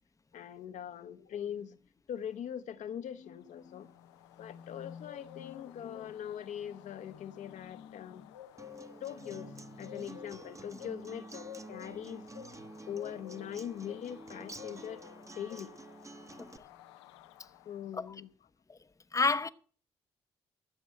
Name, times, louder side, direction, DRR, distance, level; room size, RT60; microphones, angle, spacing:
voice 1, 0.3-1.8 2.1-8.4 9.0-12.2 12.9-15.0 15.4-15.7 17.6-18.3, left 9 dB, 65° left, 1.0 m, -42 dB
sound 1, 3.4-18.0, left 10 dB, 85° left, 0.6 m, -53 dB
Acoustic guitar, 8.6-16.6, right 2 dB, 20° right, 1.2 m, -49 dB
voice 2, 19.1-19.5, left 4 dB, 25° left, 0.8 m, -29 dB
13.0 x 7.3 x 7.5 m
hypercardioid pair, 45°, 14 cm